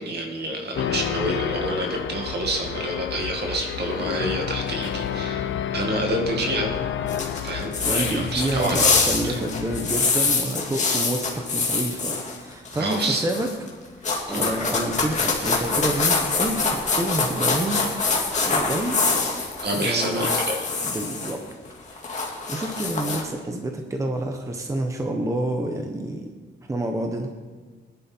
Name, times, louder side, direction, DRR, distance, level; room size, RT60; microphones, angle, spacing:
voice 1, 0.0-6.8 7.4-8.9 9.3-9.4 12.8-13.2 14.3-14.5 18.8-19.0 19.6-20.7, right 1 dB, 55° right, 2 dB, 2.1 m, -28 dB
sound 1, 0.8-10.0, left 9 dB, 75° left, 0.7 m, -30 dB
sound 2, 7.1-12.4 12.7-13.7 14.0-21.3 21.7-23.2, left 4 dB, 40° left, 2.1 m, -25 dB
voice 2, 7.8-13.5 14.3-17.8 18.0-19.0 19.7-20.3 20.8-21.4 21.9-26.3 26.7-27.3, right 1 dB, 15° right, 3 dB, 1.0 m, -28 dB
20.5 x 11.0 x 4.5 m, 1.4 s
wide cardioid pair, 170°, 20 cm